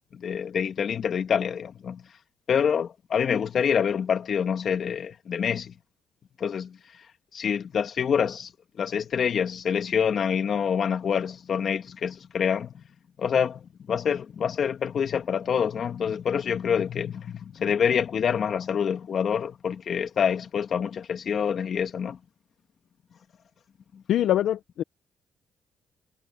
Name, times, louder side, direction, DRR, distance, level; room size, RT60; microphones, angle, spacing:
voice 1, 0.1-2.0 2.5-5.7 6.4-6.8 7.3-8.5 8.8-12.7 13.2-22.2 23.9-24.0, left 7 dB, 55° left, 2.5 m, -26 dB
voice 2, 24.1-24.8, left 12 dB, 75° left, 0.9 m, -23 dB
cardioid pair, 90°, 0 cm